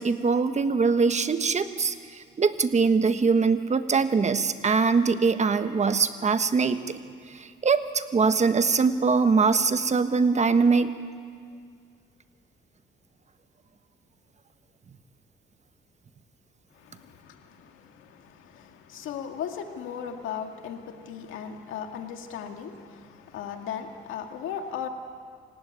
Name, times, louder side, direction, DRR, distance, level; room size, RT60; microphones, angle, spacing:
voice 1, 0.0-1.9 2.4-6.8 7.4-10.9, right 5 dB, 35° right, 10 dB, 1.3 m, -22 dB
voice 2, 16.7-24.9, left 8 dB, 85° left, 5 dB, 2.1 m, -37 dB
27.0 x 16.0 x 9.6 m, 2.1 s
cardioid pair, 90°, 20 cm